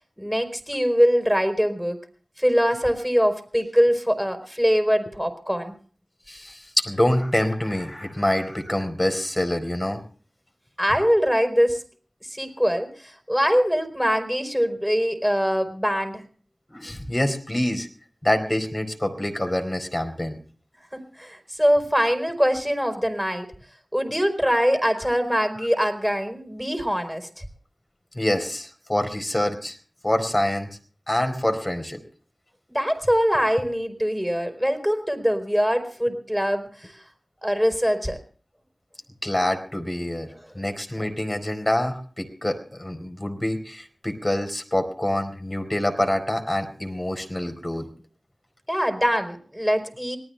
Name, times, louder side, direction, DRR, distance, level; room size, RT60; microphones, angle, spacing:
voice 1, 0.2-2.0 2.4-5.7 10.8-11.8 12.3-16.2 20.9-23.5 23.9-27.4 32.7-36.9 37.4-38.2 48.7-50.2, equal, ahead, 7 dB, 4.5 m, -23 dB
voice 2, 6.3-10.0 16.7-17.9 18.2-20.4 25.0-25.1 28.1-29.8 30.0-30.7 31.1-32.0 39.2-47.9, left 1 dB, 25° left, 7 dB, 4.3 m, -26 dB
26.0 x 19.0 x 2.3 m, 0.44 s
wide cardioid pair, 45°, 0 cm